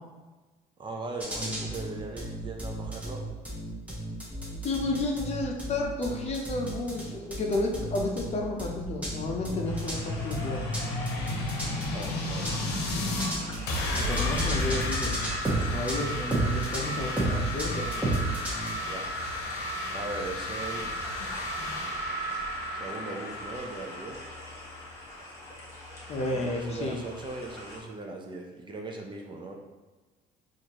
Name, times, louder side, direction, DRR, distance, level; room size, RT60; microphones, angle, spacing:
voice 1, 0.8-3.2 11.9-12.5 18.8-19.1 19.9-21.1 22.7-24.2 26.3-29.6, right 3 dB, 30° right, 1 dB, 0.5 m, -39 dB
sound 1, 1.2-18.7, right 1 dB, 10° right, 1.0 m, -33 dB
voice 2, 4.6-10.7 14.0-15.1 15.7-18.2 21.6-21.7 26.1-27.0, left 2 dB, 40° left, 1 dB, 0.6 m, -31 dB
sound 2, 8.9-13.3 13.7-25.2, left 1 dB, 75° left, 0.7 m, -33 dB
sound 3, 9.6-27.8, left 1 dB, 15° left, 1.2 m, -45 dB
4.3 x 2.5 x 2.9 m, 1.2 s
cardioid pair, 110°, 17 cm